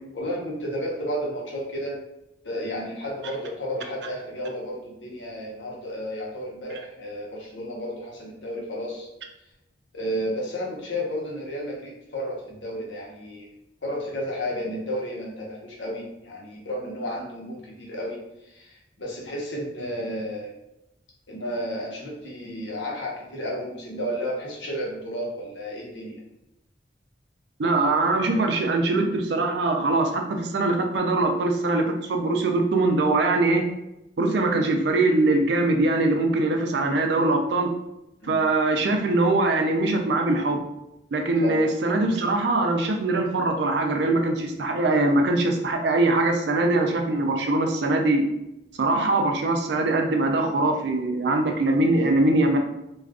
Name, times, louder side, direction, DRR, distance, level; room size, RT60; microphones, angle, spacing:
voice 1, 0.1-2.0 2.4-9.1 9.9-13.5 13.8-20.5 21.3-26.2 38.2-38.4 41.4-41.6 48.9-49.1, equal, 85° left, -3 dB, 0.9 m, -32 dB
voice 2, 27.6-33.7 34.2-37.7 38.3-40.6 41.1-48.2 48.8-52.6, right 2 dB, 65° right, 3 dB, 0.4 m, -22 dB
2.4 x 2.4 x 3.5 m, 0.90 s
head